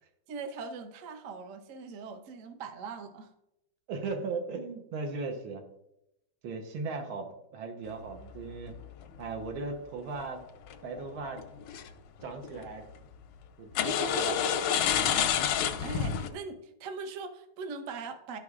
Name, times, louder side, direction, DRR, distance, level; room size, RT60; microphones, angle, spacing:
voice 1, 0.3-3.3 15.5-18.4, right 4 dB, 65° right, 6 dB, 0.8 m, -41 dB
voice 2, 3.9-5.6 6.4-8.7 9.2-10.4 10.8-11.4 12.2-12.9 13.6-14.5, right 4 dB, 85° right, 4 dB, 1.7 m, -37 dB
sound 1, 8.0-9.5 10.7-11.0 11.4-11.9 12.2-12.7 13.7-16.3, left 8 dB, 85° left, 1.4 m, -29 dB
11.5 x 4.8 x 2.4 m, 0.85 s
omnidirectional pair, 2.2 m